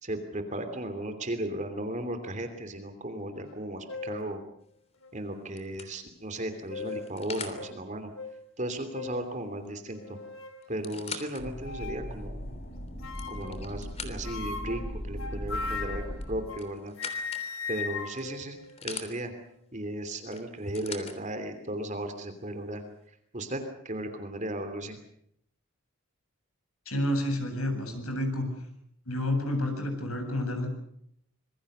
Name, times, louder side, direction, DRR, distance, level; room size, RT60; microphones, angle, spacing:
voice 1, 0.0-4.4 5.1-8.1 8.6-10.2 10.7-12.5 13.3-17.0 17.7-19.3 19.7-22.8 23.1-25.0, right 1 dB, 35° right, 8 dB, 2.9 m, -36 dB
sound 1, 3.5-3.6 3.9-4.3 5.0-5.1 6.4-7.1 7.6-7.7 8.2-8.3 8.9-9.2 9.9-10.6 11.6-12.1 13.0-13.6 14.2-16.7 17.0-19.3, left 5 dB, 70° left, 3.4 m, -38 dB
sound 2, 4.7-5.0 5.6-7.6 9.7-9.8 10.0-10.1 10.6-11.4 12.0-12.1 12.9-14.5 16.2-17.5 18.2-19.1 20.3-21.2 22.1-22.2, left 5 dB, 30° left, 3.2 m, -42 dB
sound 3, 11.4-16.4, equal, 45° left, 4.6 m, -38 dB
voice 2, 26.9-28.4 29.1-30.7, left 1 dB, 90° left, 5 dB, 8.0 m, -29 dB
26.5 x 22.5 x 6.8 m, 0.69 s
head